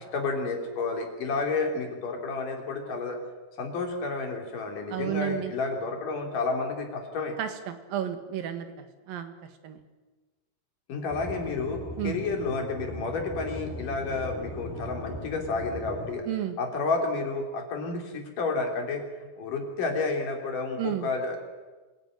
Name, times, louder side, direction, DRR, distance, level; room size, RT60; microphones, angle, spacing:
voice 1, 0.0-3.2 3.6-7.4 10.9-16.3 16.6-19.0 19.4-21.4, left 3 dB, 60° left, 3 dB, 4.7 m, -30 dB
voice 2, 4.9-5.5 7.4-9.3 9.6-9.8 12.0-12.2 16.2-16.6 20.8-21.1, right 10 dB, 70° right, 8 dB, 3.4 m, -32 dB
Aircraft / Engine, 11.1-16.1, left 1 dB, 75° left, 4.8 m, -38 dB
25.5 x 16.5 x 9.2 m, 1.2 s
omnidirectional pair, 4.3 m